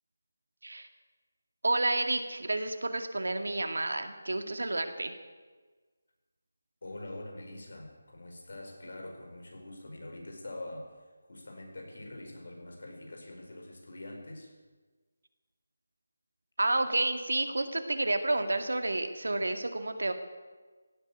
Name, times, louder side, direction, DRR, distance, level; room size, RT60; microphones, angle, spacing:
voice 1, 1.6-5.1 16.6-20.1, right 2 dB, 90° right, 7 dB, 2.1 m, -30 dB
voice 2, 6.8-14.6, left 1 dB, 65° left, 2 dB, 4.9 m, -44 dB
16.0 x 9.4 x 8.6 m, 1.3 s
figure-of-eight pair, 170°, 0 cm